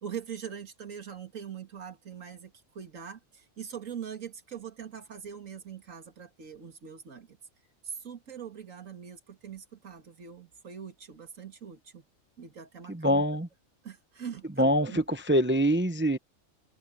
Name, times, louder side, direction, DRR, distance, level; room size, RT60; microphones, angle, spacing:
voice 1, 0.0-7.4 7.8-12.0 12.4-13.2 13.8-15.0, right 7 dB, 75° right, 2.5 m, -42 dB
voice 2, 12.9-13.5 14.6-16.2, equal, 10° right, 0.6 m, -24 dB
open air
omnidirectional pair, 1.4 m